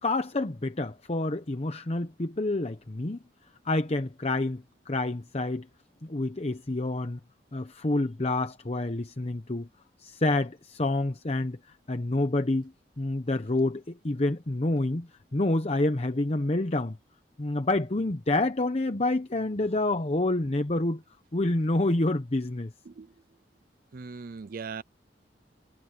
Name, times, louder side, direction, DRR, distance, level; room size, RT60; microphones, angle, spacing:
voice 1, 0.0-3.2 3.6-5.7 6.0-7.2 7.5-9.7 10.0-11.6 11.9-17.0 17.4-21.0 21.3-22.7, left 2 dB, 35° left, 0.9 m, -28 dB
voice 2, 23.9-24.8, right 5 dB, 55° right, 0.5 m, -39 dB
head